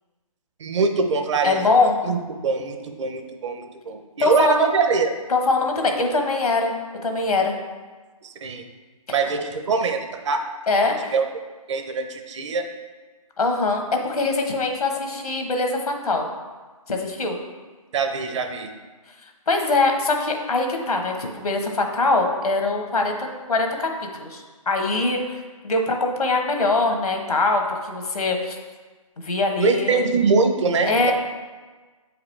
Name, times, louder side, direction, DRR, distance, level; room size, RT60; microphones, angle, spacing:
voice 1, 0.6-1.6 2.0-2.2 2.4-5.1 8.4-8.6 9.1-10.4 11.1-11.2 11.7-12.6 17.9-18.7 29.6-31.1, right 4 dB, 55° right, 5 dB, 0.8 m, -23 dB
voice 2, 1.4-2.0 4.2-4.7 5.3-6.7 7.0-7.6 9.1-9.2 10.7-11.1 13.4-16.3 16.9-17.4 19.5-28.6 29.2-30.0 30.9-31.1, left 3 dB, 85° left, 3 dB, 1.2 m, -22 dB
7.0 x 4.8 x 3.3 m, 1.4 s
figure-of-eight pair, 145°, 19 cm